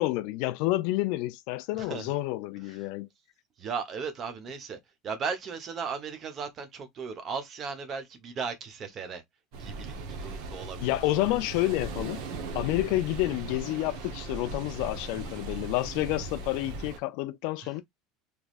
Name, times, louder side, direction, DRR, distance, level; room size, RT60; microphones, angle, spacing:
voice 1, 0.0-3.1 10.8-12.2 12.5-17.8, left 17 dB, 55° left, 0.3 m, -29 dB
voice 2, 3.6-4.8 5.0-9.2 9.6-9.9 10.2-10.9, right 5 dB, 25° right, 0.9 m, -36 dB
sound 1, 9.5-17.0, right 3 dB, 60° right, 1.0 m, -38 dB
3.5 x 3.1 x 2.4 m
cardioid pair, 175°, 0 cm